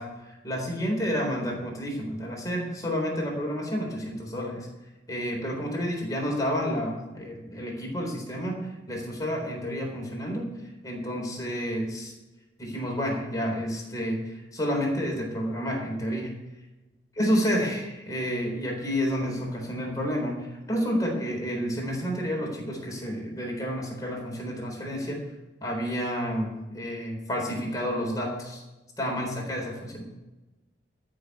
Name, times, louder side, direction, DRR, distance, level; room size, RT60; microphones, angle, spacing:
voice 1, 0.0-4.7 5.1-8.6 8.9-10.5 10.8-12.1 12.6-16.3 17.1-25.2 25.6-28.6 29.0-30.0, equal, 20° left, -1 dB, 3.9 m, -30 dB
13.0 x 6.6 x 9.6 m, 1.1 s
head